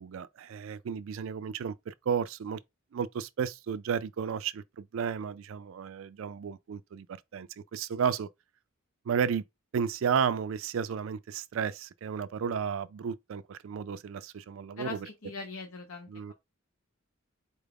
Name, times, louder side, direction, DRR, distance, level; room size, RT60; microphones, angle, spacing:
voice 1, 0.0-2.6 2.9-8.3 9.1-9.4 9.7-15.0 16.1-16.3, right 7 dB, 70° right, 0.3 m, -33 dB
voice 2, 14.8-16.3, left 4 dB, 90° left, 0.9 m, -41 dB
4.4 x 2.3 x 3.4 m
head